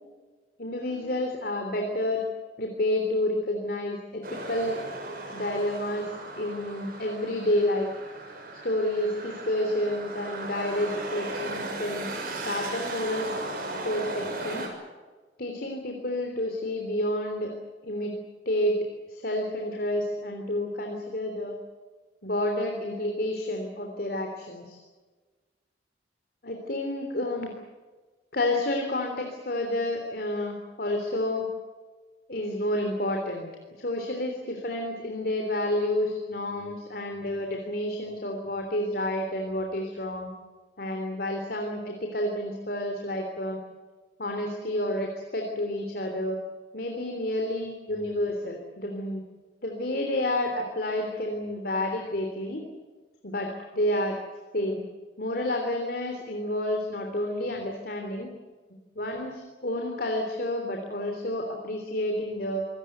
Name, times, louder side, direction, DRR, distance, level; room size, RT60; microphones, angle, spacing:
voice 1, 0.6-2.2 2.6-4.8 5.3-7.9 8.6-12.0 12.3-13.3 13.8-14.7 15.4-17.5 17.8-18.2 18.4-18.8 19.1-21.5 22.2-24.8 26.4-27.5 28.3-31.5 32.3-33.5 33.8-40.3 40.8-43.6 44.2-46.4 46.7-49.2 49.6-52.6 53.2-54.2 54.5-54.8 55.2-58.3 58.9-62.7, left 1 dB, 55° left, 3 dB, 3.4 m, -29 dB
sound 1, 4.2-14.7, right 2 dB, 55° right, 6.2 m, -37 dB
27.0 x 18.5 x 8.1 m, 1.3 s
head